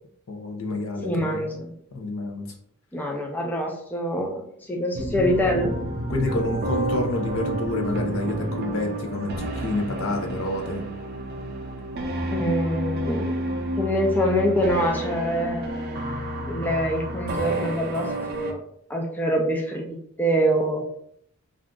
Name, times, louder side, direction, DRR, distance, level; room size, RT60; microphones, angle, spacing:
voice 1, 0.3-1.5 1.9-2.5 6.1-10.8, left 2 dB, 70° left, 2 dB, 0.6 m, -28 dB
voice 2, 1.0-1.7 2.9-5.8 12.3-13.4 13.8-15.7 16.4-18.6 18.9-20.8, equal, 10° left, 0 dB, 0.4 m, -25 dB
sound 1, 4.9-9.2, right 1 dB, 75° right, 0.7 m, -32 dB
sound 2, 5.2-18.5, right 1 dB, 50° right, 0.5 m, -31 dB
2.6 x 2.3 x 3.6 m, 0.67 s
head